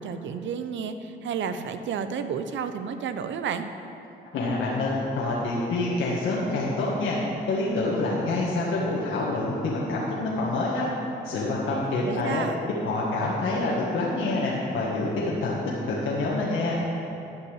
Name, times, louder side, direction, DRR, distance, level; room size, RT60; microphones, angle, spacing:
voice 1, 0.0-3.7 12.0-12.5, right 7 dB, 70° right, 9 dB, 0.8 m, -31 dB
voice 2, 4.3-7.2 7.5-10.9 11.2-12.4 12.8-15.6 15.9-16.7, left 2 dB, 80° left, -5 dB, 1.8 m, -27 dB
12.0 x 5.6 x 8.2 m, 2.9 s
cardioid pair, 90°, 20 cm